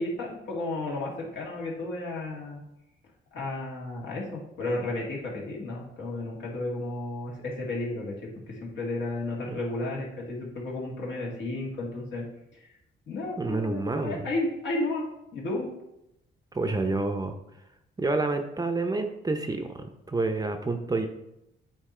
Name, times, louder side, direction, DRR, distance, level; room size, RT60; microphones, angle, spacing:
voice 1, 0.0-2.6 3.3-12.2 12.6-12.7 13.1-15.7, left 2 dB, 70° left, -3 dB, 2.1 m, -33 dB
voice 2, 13.4-14.3 16.5-17.3 18.0-21.1, right 3 dB, 20° right, 6 dB, 0.7 m, -28 dB
8.6 x 2.9 x 4.4 m, 0.85 s
cardioid pair, 90°, 20 cm